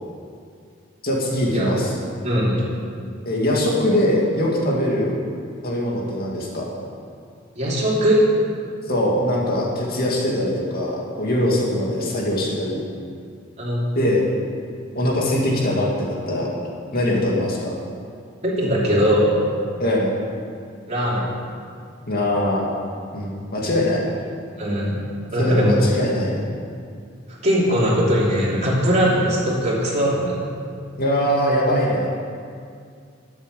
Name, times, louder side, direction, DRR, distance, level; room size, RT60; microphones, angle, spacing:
voice 1, 1.0-1.9 3.3-5.2 5.6-6.7 8.9-12.8 14.0-14.2 15.0-16.5 16.9-17.7 19.8-20.2 22.1-22.7 23.1-24.0 25.4-26.5 29.0-29.1 31.0-32.1, left 1 dB, 50° left, -3 dB, 2.4 m, -22 dB
voice 2, 2.2-2.5 7.5-8.2 13.6-13.8 17.2-17.3 18.4-19.4 20.9-21.3 24.6-24.9 25.3-25.8 27.4-30.4, equal, 35° right, -6 dB, 3.2 m, -20 dB
12.5 x 7.4 x 6.8 m, 2.2 s
head